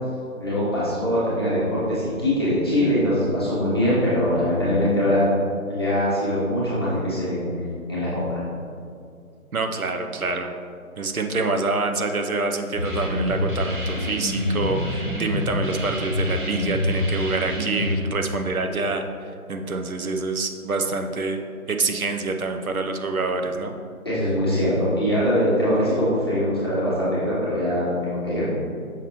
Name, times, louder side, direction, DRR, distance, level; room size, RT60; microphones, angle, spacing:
voice 1, 0.4-5.3 5.7-7.5 7.9-8.4 24.0-28.6, equal, 15° left, -11 dB, 1.0 m, -22 dB
voice 2, 9.5-10.5 11.0-21.4 21.7-23.7, right 3 dB, 75° right, 5 dB, 0.7 m, -26 dB
sound 1, 12.8-18.0, left 1 dB, 35° right, 1.0 m, -26 dB
5.9 x 5.8 x 2.9 m, 2.4 s
figure-of-eight pair, 160°, 43 cm